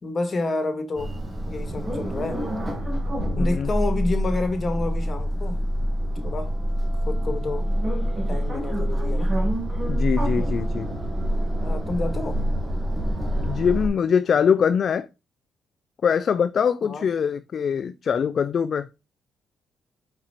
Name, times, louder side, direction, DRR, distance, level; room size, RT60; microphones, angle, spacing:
voice 1, 0.0-1.1 1.5-2.4 3.4-5.6 6.2-6.5 7.0-7.7 8.3-9.3 11.6-12.4 16.8-17.0, left 2 dB, 35° left, 1.5 m, -29 dB
sound 1, 1.0-13.9, equal, 30° right, 2.2 m, -26 dB
voice 2, 3.3-3.7 9.9-10.9 13.4-15.1 16.0-18.9, left 7 dB, 50° left, 0.3 m, -23 dB
5.0 x 4.4 x 4.3 m
cardioid pair, 90°, 0 cm